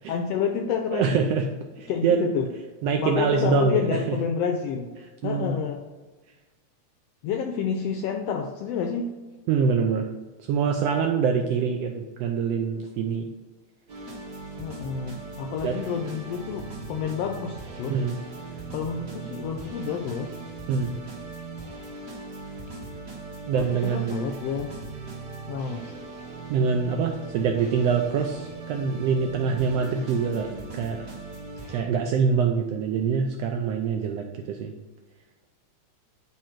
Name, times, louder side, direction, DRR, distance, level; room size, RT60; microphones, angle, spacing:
voice 1, 0.1-1.2 1.9-2.5 3.0-4.9 5.2-5.8 7.2-9.1 14.6-18.0 18.7-20.3 23.5-24.7 25.5-25.9, left 7 dB, 80° left, 3 dB, 1.4 m, -29 dB
voice 2, 0.9-1.5 1.8-2.3 2.8-4.2 5.2-5.6 9.5-10.1 10.5-13.3 15.6-15.8 17.9-18.2 20.7-20.9 23.5-24.3 26.5-30.5 30.7-31.1 31.7-34.7, right 5 dB, 80° right, 3 dB, 1.4 m, -25 dB
sound 1, 13.9-31.8, right 3 dB, 35° right, 1.5 m, -39 dB
10.0 x 3.4 x 4.4 m, 1.3 s
omnidirectional pair, 3.3 m